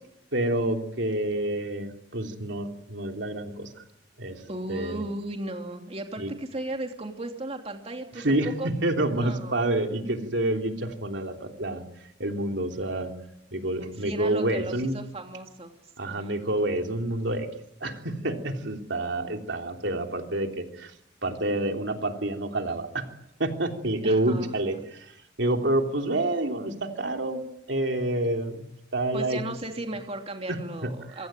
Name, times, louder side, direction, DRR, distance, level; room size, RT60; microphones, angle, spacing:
voice 1, 0.3-3.8 4.2-4.4 4.7-5.0 6.2-6.3 8.2-11.8 12.2-13.1 13.5-15.0 16.0-17.5 17.8-20.9 21.2-23.1 23.4-27.4 27.7-29.4 30.5-31.2, right 1 dB, 70° right, 4 dB, 3.3 m, -28 dB
voice 2, 4.5-8.7 9.1-9.6 14.0-15.7 16.1-16.3 24.0-24.5 29.1-31.3, right 1 dB, 35° right, 4 dB, 3.0 m, -36 dB
26.0 x 25.0 x 9.1 m, 0.80 s
head